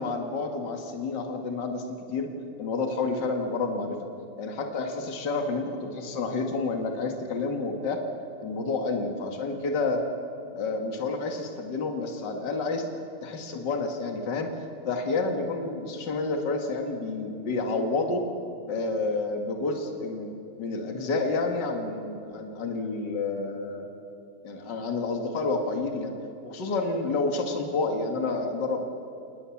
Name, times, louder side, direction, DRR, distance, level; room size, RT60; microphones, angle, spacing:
voice 1, 0.0-2.3 2.6-4.1 4.4-8.0 8.4-10.0 10.5-12.8 13.2-14.5 14.8-18.3 18.7-23.9 24.4-26.1 26.4-28.8, left 3 dB, 55° left, 4 dB, 2.4 m, -29 dB
29.0 x 19.5 x 7.3 m, 2.8 s
omnidirectional pair, 2.4 m